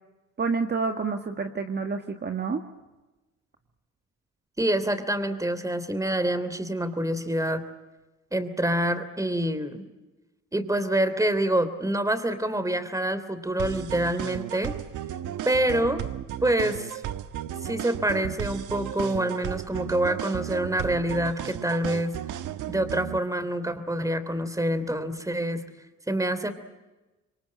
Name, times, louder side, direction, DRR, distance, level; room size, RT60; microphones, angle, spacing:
voice 1, 0.4-2.6, right 4 dB, 35° right, 5 dB, 1.8 m, -28 dB
voice 2, 4.6-7.6 8.3-9.9 10.5-14.7 15.4-16.0 16.4-17.0 17.6-22.2 22.7-25.7 26.1-26.5, right 1 dB, 10° right, 11 dB, 3.2 m, -26 dB
sound 1, 13.6-23.2, right 11 dB, 85° right, 1.3 m, -34 dB
27.0 x 23.0 x 8.7 m, 1.1 s
cardioid pair, 90°, 30 cm